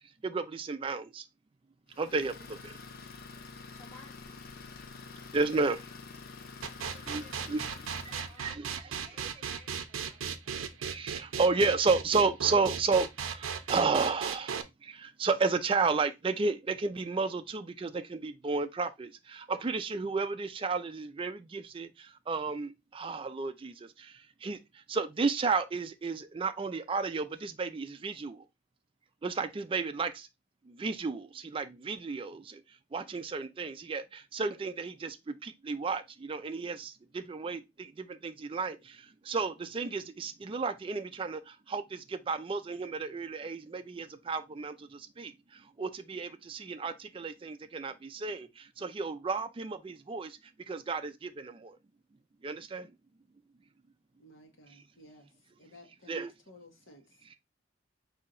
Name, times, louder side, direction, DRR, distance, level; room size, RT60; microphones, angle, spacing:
voice 1, 0.2-1.2 2.0-2.8 5.3-5.8 6.9-7.7 8.1-9.3 10.8-24.1 24.4-24.6 24.9-28.4 29.2-30.3 30.7-32.6 32.9-39.0 39.3-45.3 45.8-50.4 50.7-51.8 52.4-52.9 56.1-56.3, right 4 dB, 25° right, 0.3 m, -32 dB
Idling, 1.9-8.4, left 4 dB, 45° left, 0.5 m, -47 dB
voice 2, 3.7-4.4 7.2-7.9 8.3-10.8, left 1 dB, 10° left, 1.8 m, -58 dB
sound 1, 6.6-14.6, right 7 dB, 80° right, 0.5 m, -36 dB
voice 3, 54.2-55.3 55.6-57.4, left 1 dB, 75° left, 1.2 m, -56 dB
4.2 x 2.8 x 3.7 m
head